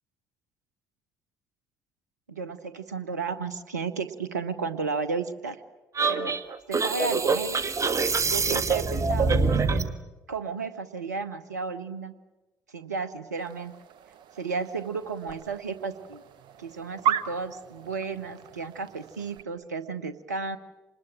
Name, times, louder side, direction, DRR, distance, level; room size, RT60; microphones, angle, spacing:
voice 1, 2.3-5.6 6.1-6.3 6.7-7.6 8.2-9.8 10.3-12.1 12.7-13.7 14.4-16.2 16.6-20.6, right 5 dB, 85° right, 14 dB, 0.9 m, -33 dB
sound 1, 6.0-9.9, right 4 dB, 35° right, 1.7 m, -25 dB
sound 2, 13.4-19.4, right 9 dB, 60° right, 1.1 m, -36 dB
26.5 x 20.5 x 8.9 m, 1.1 s
figure-of-eight pair, 45°, 9 cm